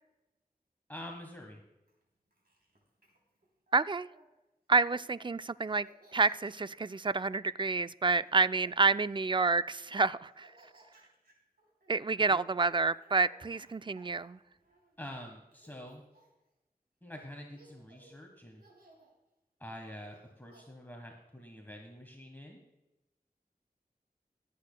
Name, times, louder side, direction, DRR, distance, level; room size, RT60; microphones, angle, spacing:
voice 1, 0.9-1.6 12.2-12.4 15.0-16.0 17.0-18.6 19.6-22.6, left 1 dB, 10° left, 1.4 m, -46 dB
Laughter, 1.9-4.3 4.8-5.3 5.6-7.4 8.1-9.6 10.2-15.1 15.5-16.5 17.1-17.2 17.5-18.2 18.6-19.1 20.1-20.6, right 1 dB, 80° right, 3.2 m, -62 dB
voice 2, 3.7-4.1 4.7-5.9 6.1-10.5 11.9-14.4, right 4 dB, 30° right, 0.4 m, -29 dB
25.0 x 8.4 x 2.2 m
wide cardioid pair, 45°, 16 cm